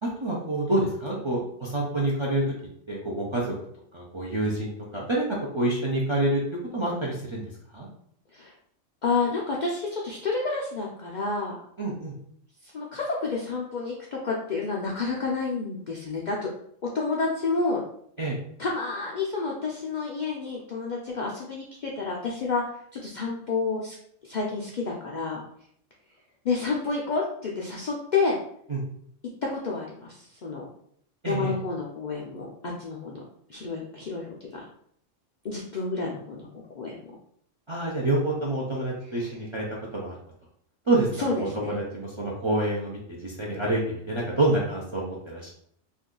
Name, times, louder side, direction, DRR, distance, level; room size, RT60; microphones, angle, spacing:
voice 1, 0.0-2.5 2.9-3.5 3.9-5.2 5.5-6.4 6.7-7.4 7.7-7.9 11.8-12.1 18.2-18.4 28.7-28.8 31.2-31.5 37.7-39.6 39.9-40.1 40.9-41.1 41.4-45.5, right 2 dB, 45° right, -4 dB, 0.3 m, -27 dB
voice 2, 9.0-11.6 12.6-16.5 16.9-17.8 18.6-23.9 24.2-25.4 26.4-28.4 29.4-30.7 31.3-33.2 33.5-34.6 35.4-36.5 36.7-37.0 39.1-39.4 41.2-41.8, left 4 dB, 65° left, -2 dB, 0.4 m, -29 dB
2.6 x 2.3 x 3.6 m, 0.67 s
omnidirectional pair, 1.3 m